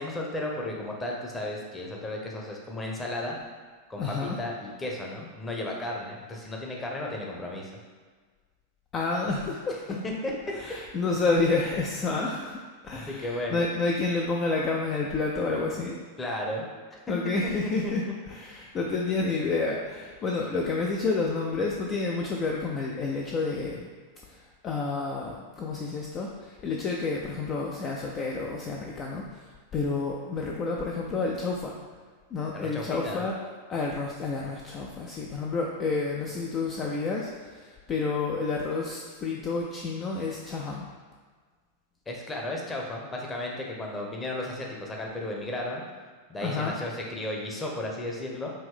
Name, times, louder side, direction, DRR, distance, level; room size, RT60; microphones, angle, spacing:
voice 1, 0.0-3.4 3.9-7.7 10.0-10.3 12.9-13.7 16.2-16.7 16.9-17.0 17.4-17.9 32.5-33.2 42.1-45.8 46.3-48.5, left 1 dB, 15° left, -1 dB, 0.8 m, -34 dB
voice 2, 4.0-4.4 8.9-9.8 10.6-16.0 17.1-18.0 18.3-23.9 24.3-31.8 32.3-33.3 33.7-40.9 46.4-46.7, left 3 dB, 30° left, -1 dB, 0.4 m, -29 dB
5.3 x 2.6 x 3.5 m, 1.5 s
figure-of-eight pair, 90°, 0 cm